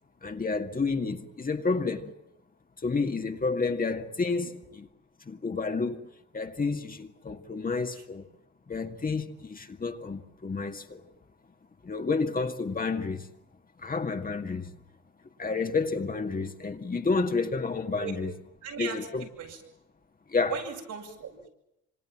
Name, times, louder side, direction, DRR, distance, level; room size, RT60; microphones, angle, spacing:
voice 1, 0.2-2.1 2.8-4.9 5.3-6.1 6.3-8.3 8.7-11.1 11.8-13.3 13.8-14.8 15.4-18.3 18.8-19.3 20.3-20.5, left 4 dB, 30° left, 2.2 m, -30 dB
voice 2, 18.6-19.1 19.4-19.6 20.5-21.5, right 7 dB, 80° right, 7.8 m, -38 dB
26.5 x 26.0 x 7.5 m
cardioid pair, 90°, 30 cm